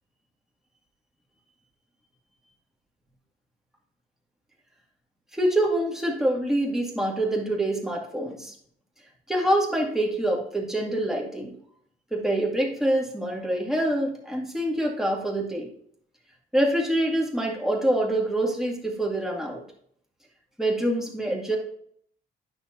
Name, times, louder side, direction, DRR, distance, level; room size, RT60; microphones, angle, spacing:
voice 1, 5.3-8.5 9.3-11.5 12.1-15.7 16.5-19.6 20.6-21.6, right 1 dB, ahead, -1 dB, 2.0 m, -25 dB
9.4 x 6.1 x 2.8 m, 0.63 s
cardioid pair, 90°, 20 cm